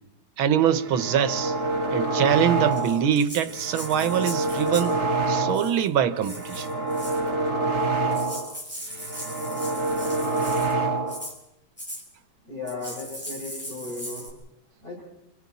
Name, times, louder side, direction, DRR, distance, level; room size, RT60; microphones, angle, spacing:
voice 1, 0.4-1.5 1.9-5.0 5.3-6.7, right 9 dB, 90° right, 1.8 m, -23 dB
sound 1, 0.7-3.1 3.5-5.8 6.2-8.6 8.9-11.3, right 2 dB, 50° right, 2.7 m, -27 dB
Rattle (instrument), 2.7-5.0 5.5-5.9 6.2-7.3 7.8-7.9 8.1-10.7 11.1-11.4 11.8-12.0 12.7-14.3, equal, 5° left, 4.9 m, -39 dB
voice 2, 12.4-14.3 14.8-15.0, left 3 dB, 35° left, 7.6 m, -36 dB
29.5 x 27.0 x 4.2 m
omnidirectional pair, 2.2 m